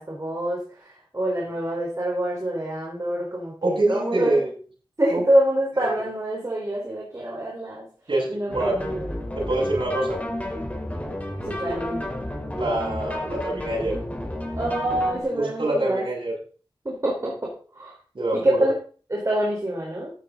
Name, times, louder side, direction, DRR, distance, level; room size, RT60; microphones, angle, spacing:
voice 1, 0.0-4.4 5.0-7.9 8.3-9.1 11.4-12.1 14.5-16.0 16.8-17.9 18.3-18.7 19.1-20.1, right 1 dB, 35° right, -3 dB, 4.2 m, -26 dB
voice 2, 3.6-4.5 5.1-5.2 8.1-8.7 9.4-10.2 12.5-14.0 15.3-16.3 18.2-18.7, right 2 dB, 75° right, -5 dB, 7.0 m, -25 dB
sound 1, 8.5-15.2, left 1 dB, 15° left, 4.0 m, -31 dB
14.5 x 9.0 x 4.0 m, 0.40 s
wide cardioid pair, 75°, 9 cm